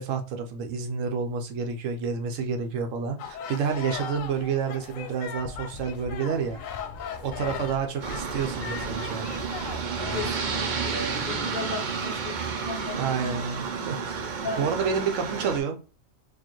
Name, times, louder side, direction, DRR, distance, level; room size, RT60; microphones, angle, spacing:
voice 1, 0.0-6.6 7.2-9.3 12.9-15.8, right 6 dB, 80° right, 5 dB, 1.0 m, -29 dB
sound 1, 3.2-10.3, left 6 dB, 85° left, 1.0 m, -38 dB
voice 2, 7.4-7.7 10.1-13.4 13.7-14.0 14.4-14.7, left 3 dB, 50° left, 3 dB, 0.7 m, -36 dB
Aircraft, 8.0-15.6, right 5 dB, 50° right, 0.6 m, -31 dB
4.6 x 2.5 x 2.9 m, 0.35 s
omnidirectional pair, 1.3 m